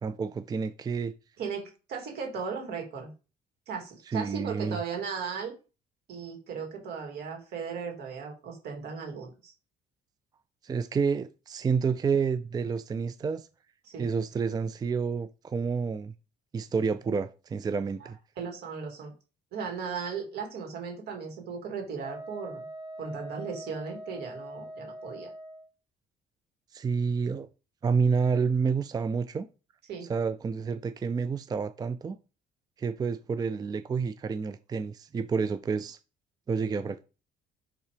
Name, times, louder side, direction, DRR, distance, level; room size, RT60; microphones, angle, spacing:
voice 1, 0.0-1.1 4.1-4.8 10.6-13.5 14.0-16.1 16.5-18.2 26.7-27.5 27.8-29.5 30.1-32.2 32.8-36.0 36.5-37.0, right 5 dB, 25° right, 0.4 m, -29 dB
voice 2, 1.4-3.1 3.7-5.5 6.1-9.5 13.9-14.1 18.0-18.1 18.4-19.1 19.5-22.6 23.0-25.3 29.9-30.1, right 5 dB, 70° right, 2.8 m, -37 dB
Wind instrument woodwind instrument, 22.0-25.7, right 1 dB, 5° right, 2.8 m, -42 dB
7.2 x 3.7 x 5.0 m
cardioid pair, 110°, 17 cm